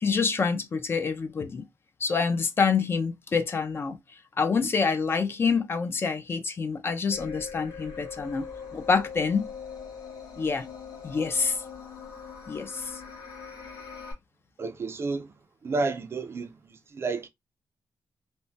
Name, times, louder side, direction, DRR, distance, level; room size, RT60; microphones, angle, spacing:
voice 1, 0.0-1.7 2.0-4.0 4.4-8.5 8.7-9.5 10.4-10.7 11.0-11.6 12.5-12.9, left 5 dB, 35° left, 0.4 m, -26 dB
sound 1, 7.1-14.1, left 6 dB, 80° left, 1.1 m, -41 dB
voice 2, 14.6-15.3 15.6-16.5 16.9-17.3, right 3 dB, 40° right, 0.4 m, -30 dB
3.2 x 2.1 x 2.5 m
wide cardioid pair, 160°, 7 cm